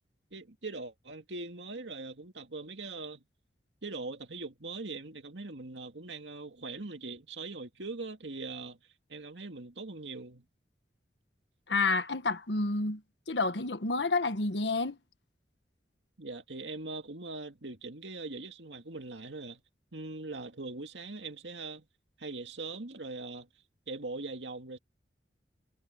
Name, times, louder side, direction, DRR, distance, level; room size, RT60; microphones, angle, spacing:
voice 1, 0.3-3.2 3.8-8.8 9.1-10.4 16.2-19.6 19.9-21.9 22.2-23.5 23.9-24.8, right 3 dB, 85° right, 2.3 m, -41 dB
voice 2, 11.7-13.0 13.3-15.0, left 3 dB, 80° left, 1.4 m, -29 dB
head